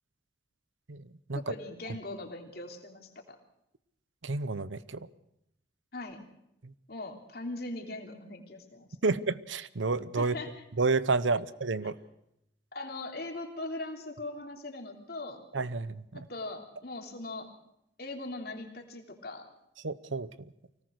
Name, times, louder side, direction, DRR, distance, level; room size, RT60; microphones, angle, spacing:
voice 1, 1.3-3.4 5.9-6.2 6.9-8.9 10.2-10.6 11.8-11.9 12.7-15.4 16.1-17.5 18.0-19.5, left 2 dB, 55° left, 3 dB, 3.2 m, -40 dB
voice 2, 4.2-5.0 9.0-10.4 10.8-12.0 15.5-16.3 19.8-20.3, right 3 dB, 85° right, 17 dB, 0.9 m, -30 dB
25.0 x 18.0 x 6.6 m, 0.81 s
head